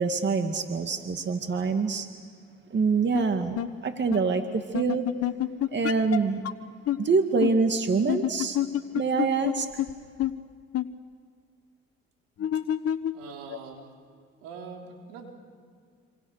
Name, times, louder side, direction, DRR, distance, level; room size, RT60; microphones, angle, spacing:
voice 1, 0.0-2.1 2.7-5.1 5.7-6.4 7.0-8.6 8.9-9.8, right 4 dB, 40° right, 6 dB, 2.2 m, -25 dB
sound 1, 3.1-3.2 3.6-3.7 4.1-4.2 4.7-6.2 6.4-6.5 6.9-7.0 7.4-7.5 8.1-9.5 9.8-9.9 10.2-10.3 10.7-10.9 12.4-13.8, left 11 dB, 55° left, 1.2 m, -27 dB
voice 2, 13.1-13.9 14.4-15.3, right 5 dB, 90° right, 2 dB, 3.7 m, -43 dB
27.0 x 26.5 x 6.7 m, 2.1 s
supercardioid pair, 70°, 29 cm